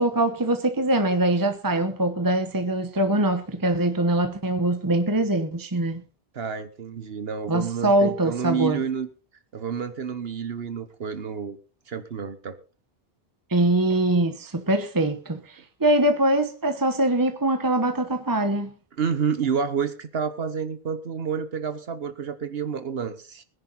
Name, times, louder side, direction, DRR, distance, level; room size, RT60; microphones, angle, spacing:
voice 1, 0.0-6.0 7.5-8.8 13.5-18.7, right 1 dB, 20° right, 1.1 m, -23 dB
voice 2, 6.3-9.1 9.5-11.6 11.9-12.6 19.0-23.4, right 6 dB, 75° right, 1.3 m, -29 dB
20.5 x 10.5 x 4.1 m
omnidirectional pair, 1.0 m